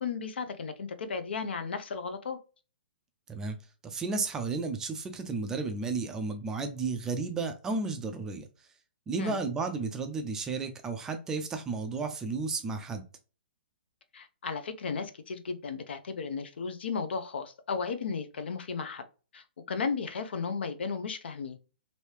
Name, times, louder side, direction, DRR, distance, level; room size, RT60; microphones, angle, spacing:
voice 1, 0.0-2.4 9.2-9.4 14.1-19.0 19.3-21.6, left 5 dB, 80° left, 0.6 m, -34 dB
voice 2, 3.8-8.5 9.1-13.0, right 4 dB, 10° right, 0.3 m, -33 dB
3.0 x 2.7 x 3.2 m
hypercardioid pair, 165°, 6 cm